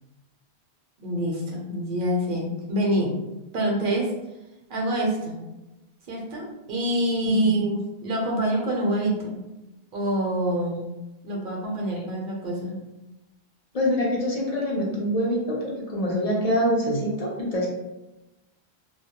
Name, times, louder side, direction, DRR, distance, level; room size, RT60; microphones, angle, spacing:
voice 1, 1.0-3.1 3.5-4.1 4.7-5.4 6.1-9.4 9.9-10.9 11.2-12.8, right 1 dB, 60° right, -2 dB, 0.8 m, -26 dB
voice 2, 7.3-7.6 13.7-17.7, equal, 50° left, -4 dB, 0.5 m, -25 dB
2.2 x 2.1 x 2.8 m, 1.0 s
omnidirectional pair, 1.1 m